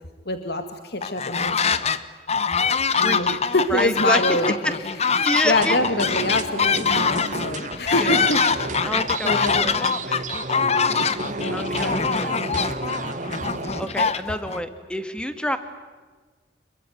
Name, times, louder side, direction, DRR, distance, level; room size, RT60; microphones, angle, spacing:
voice 1, 0.3-1.8 2.6-8.4 8.9-9.9 11.4-12.2, left 1 dB, 60° left, 7 dB, 2.0 m, -26 dB
sound 1, 1.0-2.0 2.3-14.6, left 5 dB, 35° left, 1.2 m, -23 dB
voice 2, 2.9-3.4 3.7-4.2 5.2-5.8 8.0-8.2 8.8-10.3 10.9-11.2 11.5-12.4 13.8-15.6, equal, 5° left, 9 dB, 2.2 m, -28 dB
sound 2, 5.6-13.9, right 2 dB, 45° right, 2.2 m, -32 dB
27.0 x 23.0 x 9.5 m, 1.4 s
head